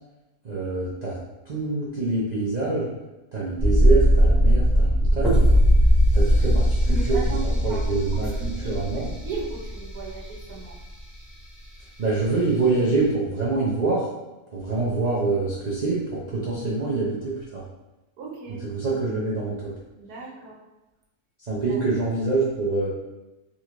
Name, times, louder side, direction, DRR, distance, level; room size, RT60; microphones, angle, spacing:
voice 1, 0.4-1.2 1.4-2.9 3.3-5.5 6.1-8.3 8.6-9.1 12.0-14.1 14.5-17.6 18.6-19.7 21.5-22.9, right 3 dB, 60° right, -7 dB, 0.4 m, -25 dB
sound 1, 3.6-10.4 10.7-10.8, equal, ahead, 0.5 m, -19 dB
voice 2, 6.9-10.7 18.2-18.6 19.9-20.6 21.7-21.8, right 3 dB, 85° right, -3 dB, 1.3 m, -37 dB
3.7 x 3.0 x 2.5 m, 1.0 s
omnidirectional pair, 1.6 m